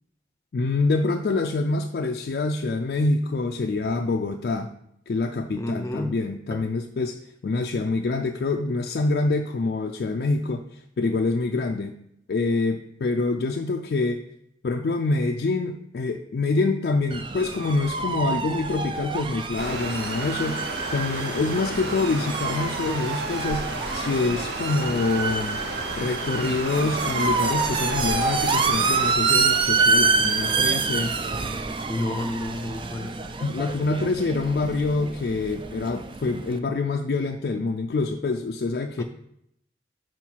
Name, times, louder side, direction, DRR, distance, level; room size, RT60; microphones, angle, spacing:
voice 1, 0.5-4.7 5.1-12.0 12.3-14.2 14.6-20.6 20.9-25.6 26.0-31.1 33.4-39.0, left 3 dB, 60° left, 3 dB, 0.3 m, -26 dB
voice 2, 5.6-6.2 31.9-33.2 39.0-39.1, left 1 dB, 15° left, 5 dB, 0.6 m, -30 dB
sound 1, 17.1-36.6, right 4 dB, 30° right, 0.3 m, -27 dB
sound 2, 19.6-29.1, right 2 dB, 75° right, 0.8 m, -33 dB
5.7 x 4.6 x 4.6 m, 0.76 s
head